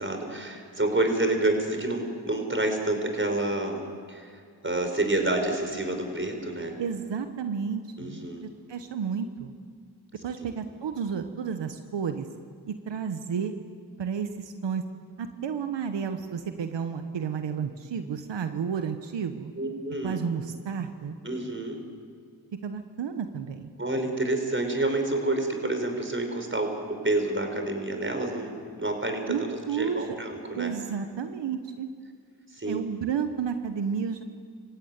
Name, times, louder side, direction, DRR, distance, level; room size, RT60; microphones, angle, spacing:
voice 1, 0.0-6.8 8.0-8.5 19.6-20.2 21.2-21.8 23.8-28.5 28.8-30.7 32.5-32.8, right 2 dB, 30° right, 4 dB, 5.5 m, -28 dB
voice 2, 6.8-9.5 10.2-12.3 12.6-13.5 14.0-14.8 15.2-19.5 20.0-21.2 22.6-23.7 29.3-30.0 30.5-31.9 32.7-34.2, right 7 dB, 85° right, 7 dB, 1.2 m, -31 dB
27.0 x 16.0 x 9.5 m, 2.1 s
cardioid pair, 45°, 42 cm